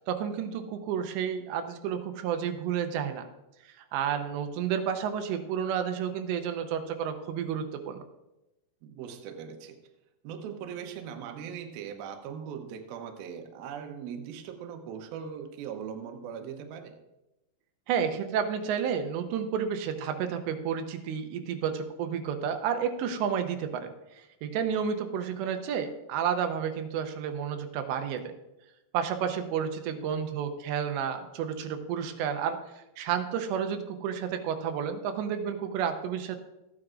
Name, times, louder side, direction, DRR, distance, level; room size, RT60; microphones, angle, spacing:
voice 1, 0.1-3.3 3.7-8.0 17.9-28.3 28.9-36.4, right 8 dB, 90° right, 7 dB, 3.0 m, -31 dB
voice 2, 8.8-9.8 10.2-17.0, right 7 dB, 75° right, 5 dB, 2.4 m, -40 dB
14.5 x 9.4 x 2.5 m, 0.96 s
omnidirectional pair, 5.0 m